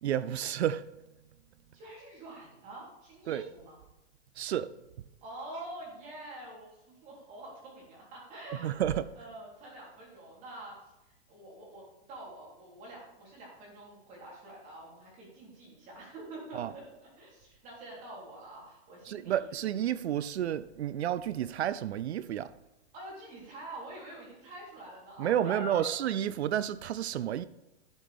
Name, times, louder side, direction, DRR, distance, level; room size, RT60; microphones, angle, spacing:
voice 1, 0.0-0.9 3.3-3.4 4.4-4.7 8.6-9.1 16.5-16.7 19.1-22.5 25.2-27.5, right 10 dB, 70° right, 0.6 m, -31 dB
voice 2, 1.7-3.8 5.2-8.8 9.2-19.6 22.9-26.0, right 1 dB, 20° right, 3.5 m, -46 dB
11.5 x 7.9 x 3.5 m
hypercardioid pair, 165°, 34 cm